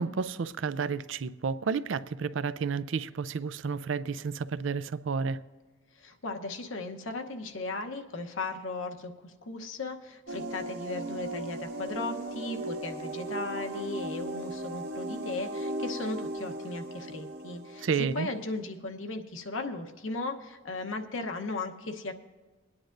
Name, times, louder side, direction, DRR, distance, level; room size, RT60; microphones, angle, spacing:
voice 1, 0.0-5.4 17.8-18.3, right 5 dB, 75° right, 0.4 m, -31 dB
voice 2, 6.0-22.1, left 2 dB, 80° left, 1.0 m, -36 dB
sound 1, 10.3-18.6, right 1 dB, 55° right, 1.0 m, -37 dB
22.0 x 9.9 x 2.6 m
head